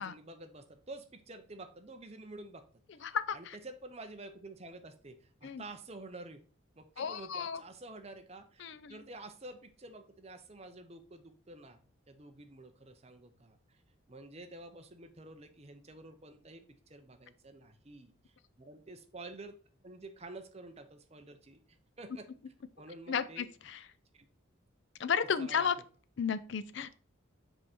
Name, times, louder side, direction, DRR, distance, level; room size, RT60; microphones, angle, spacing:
voice 1, 0.0-2.6 3.0-6.4 6.7-11.8 12.1-13.8 14.1-19.6 19.8-22.3 22.8-23.5 24.1-24.3 25.4-25.7, right 2 dB, 30° right, 7 dB, 0.7 m, -49 dB
voice 2, 3.0-3.6 5.4-5.6 7.0-7.6 8.6-9.0 23.1-23.9 25.0-25.8 26.2-27.0, left 6 dB, 60° left, 13 dB, 0.4 m, -33 dB
5.3 x 4.7 x 4.3 m, 0.39 s
head